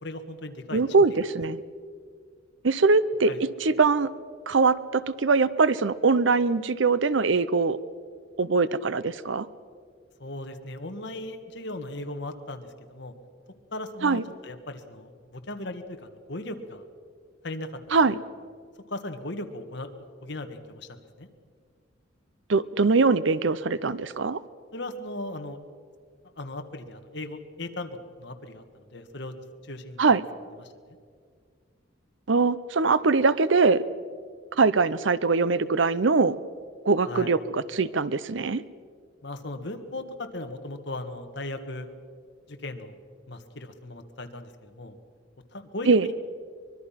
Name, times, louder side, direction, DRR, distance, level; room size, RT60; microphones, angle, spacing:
voice 1, 0.0-0.8 3.3-3.4 10.2-13.1 13.7-16.8 17.4-17.7 18.0-18.1 18.9-19.9 20.2-21.3 24.7-25.6 26.4-28.6 28.9-29.3 29.6-30.1 30.6-30.7 37.1-37.4 39.2-41.9 42.5-43.0 43.3-44.9 45.5-46.1, left 2 dB, 60° left, 7 dB, 1.6 m, -37 dB
voice 2, 0.7-1.6 2.6-3.3 3.6-4.1 4.5-7.8 8.4-9.5 14.0-14.2 17.9-18.2 22.5-24.4 30.0-30.2 32.3-33.8 34.6-36.4 36.8-38.6 45.9-46.1, right 4 dB, 65° right, 16 dB, 0.7 m, -22 dB
24.0 x 22.0 x 5.8 m, 2.1 s
head